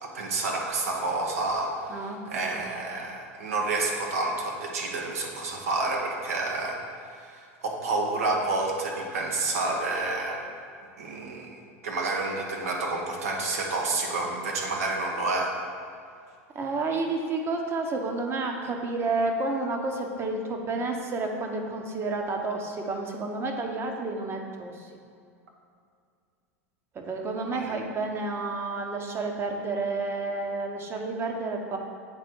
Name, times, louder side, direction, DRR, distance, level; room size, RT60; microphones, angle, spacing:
voice 1, 0.0-6.8 7.1-10.4 11.0-15.6 27.5-27.7, right 2 dB, 75° right, 0 dB, 1.1 m, -29 dB
voice 2, 1.9-2.6 16.5-24.9 26.9-31.8, right 3 dB, 30° right, 3 dB, 1.0 m, -30 dB
8.0 x 4.2 x 4.6 m, 2.3 s
hypercardioid pair, 90°, 8 cm